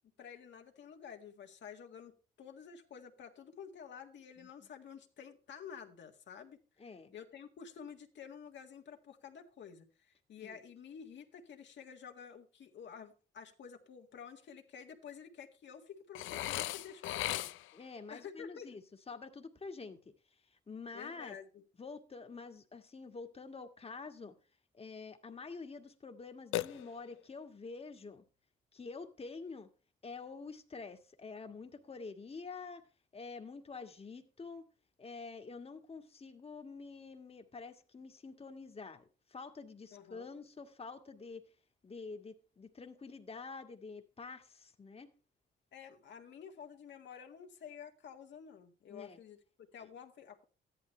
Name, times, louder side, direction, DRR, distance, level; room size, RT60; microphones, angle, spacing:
voice 1, 0.2-6.6 7.1-17.5 18.1-18.8 20.9-21.6 39.9-40.3 45.7-50.4, left 7 dB, 65° left, 1.7 m, -51 dB
voice 2, 6.8-7.1 10.4-10.6 17.7-18.8 19.1-20.0 20.7-21.3 21.8-24.3 24.7-28.2 28.7-29.7 30.0-32.8 33.1-34.6 35.0-39.0 39.3-41.4 41.8-45.1 48.9-49.2, left 4 dB, 30° left, 1.6 m, -47 dB
Burping eructation, 16.1-17.9 26.5-27.3, left 15 dB, 80° left, 0.4 m, -37 dB
13.5 x 11.0 x 3.3 m
cardioid pair, 90°, 20 cm